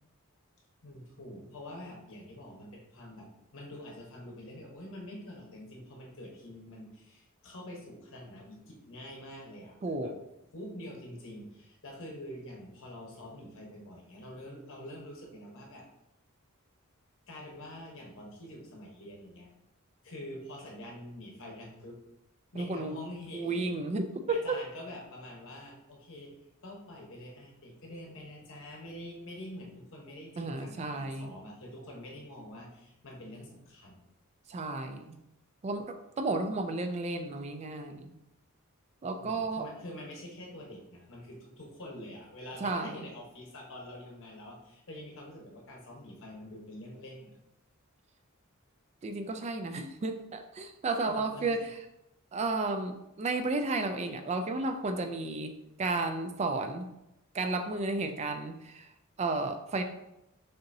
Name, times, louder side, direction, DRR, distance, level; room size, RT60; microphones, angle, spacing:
voice 1, 0.8-3.3 3.5-10.1 10.5-15.9 17.3-19.5 20.0-22.0 22.5-23.7 24.3-26.3 26.6-34.0 39.2-47.3 51.1-51.6, left 1 dB, 65° left, 0 dB, 1.1 m, -46 dB
voice 2, 9.8-10.1 22.6-23.0 23.3-24.4 30.4-31.3 34.5-35.2 35.6-38.1 39.0-39.7 42.6-43.0 49.0-51.8 52.3-56.9 57.3-58.9 59.2-59.8, right 3 dB, 30° right, 7 dB, 0.3 m, -33 dB
6.7 x 2.7 x 2.7 m, 0.85 s
head